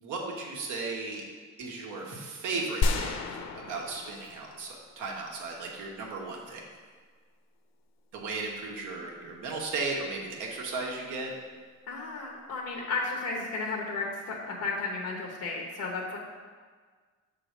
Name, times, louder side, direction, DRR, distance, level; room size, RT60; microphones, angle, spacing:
voice 1, 0.0-1.2 1.6-3.1 3.6-6.6 8.1-11.3, right 3 dB, 90° right, -1 dB, 1.3 m, -35 dB
sound 1, 2.8-5.1, left 3 dB, 60° left, 0.7 m, -31 dB
voice 2, 11.9-16.2, left 3 dB, 85° left, -1 dB, 1.0 m, -33 dB
6.8 x 3.8 x 6.0 m, 1.5 s
cardioid pair, 90°, 30 cm